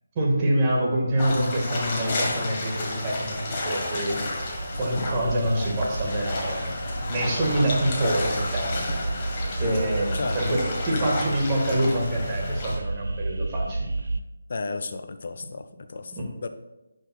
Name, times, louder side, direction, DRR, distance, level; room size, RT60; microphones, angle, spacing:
voice 1, 0.1-4.4 4.8-6.8 7.1-8.8 9.6-13.9 16.1-16.3, right 1 dB, 25° right, -2 dB, 1.7 m, -26 dB
sound 1, 1.2-12.8, left 2 dB, 30° left, 1.3 m, -31 dB
sound 2, 2.8-14.2, right 2 dB, 85° right, 0.5 m, -32 dB
voice 2, 10.1-10.6 11.0-11.1 14.5-16.5, left 3 dB, 55° left, 9 dB, 0.6 m, -34 dB
10.0 x 5.4 x 2.4 m, 1.0 s
figure-of-eight pair, 160°, 0 cm